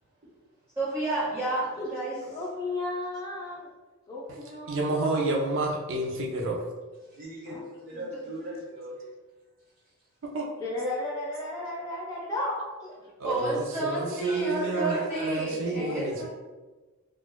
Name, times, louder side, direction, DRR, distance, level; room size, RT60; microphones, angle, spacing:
voice 1, 0.2-0.7 7.0-9.0 9.8-10.1 13.9-15.6, right 1 dB, 40° right, -7 dB, 1.2 m, -40 dB
voice 2, 0.7-2.1 7.9-8.1 13.2-16.3, right 2 dB, 10° right, -11 dB, 1.3 m, -30 dB
voice 3, 2.3-3.7 4.1-5.4 7.5-7.8 10.6-12.9 15.1-15.2 15.7-16.3, left 2 dB, 15° left, -5 dB, 0.7 m, -34 dB
voice 4, 4.7-6.6 10.3-10.5 13.2-14.9 15.2-16.3, right 2 dB, 60° right, 0 dB, 0.5 m, -29 dB
4.1 x 2.3 x 2.2 m, 1.3 s
head